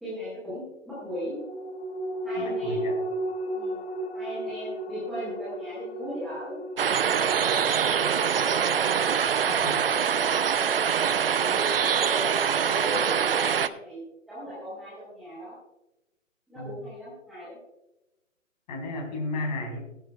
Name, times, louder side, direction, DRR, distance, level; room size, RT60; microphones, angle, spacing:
voice 1, 0.0-1.4 2.2-2.9 3.5-3.8 4.1-6.6 6.9-8.6 9.8-10.1 11.2-14.0 14.3-15.6 16.5-17.6, equal, ahead, -12 dB, 0.5 m, -38 dB
sound 1, 1.0-11.8 12.2-12.3, right 1 dB, 50° left, 1.6 m, -36 dB
voice 2, 2.4-2.9 9.5-9.8 16.5-16.7 18.7-19.8, left 2 dB, 35° left, 1 dB, 4.1 m, -33 dB
sound 2, 6.8-13.7, right 7 dB, 45° right, 0.6 m, -24 dB
17.5 x 10.0 x 2.3 m, 0.95 s
figure-of-eight pair, 145°, 39 cm